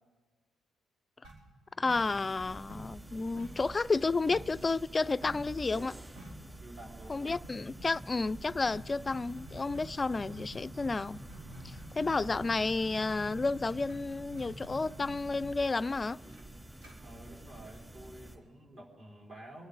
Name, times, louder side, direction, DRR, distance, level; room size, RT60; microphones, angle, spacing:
sound 1, 1.2-2.4 2.7-4.6 5.2-5.5 5.8-5.9 6.2-6.5 7.3-18.1, right 1 dB, 90° right, 3.7 m, -49 dB
voice 1, 1.8-5.9 7.1-11.2 11.6-16.2, left 3 dB, 25° left, 0.3 m, -31 dB
sound 2, 1.9-18.4, right 1 dB, 20° right, 3.1 m, -49 dB
voice 2, 6.6-7.4 17.0-19.7, right 1 dB, 50° right, 4.7 m, -50 dB
26.5 x 11.5 x 4.0 m
cardioid pair, 90°, 0 cm